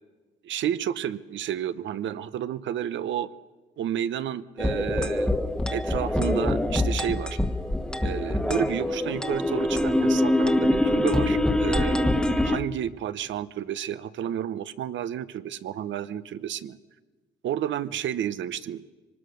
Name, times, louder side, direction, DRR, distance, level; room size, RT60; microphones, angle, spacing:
voice 1, 0.4-3.3 3.8-5.3 5.7-7.4 8.0-16.8 17.4-18.8, right 10 dB, 70° right, 14 dB, 0.9 m, -31 dB
sound 1, 4.6-12.6, left 1 dB, 5° left, 1.2 m, -24 dB
24.0 x 20.0 x 6.4 m, 1.3 s
cardioid pair, 90°, 20 cm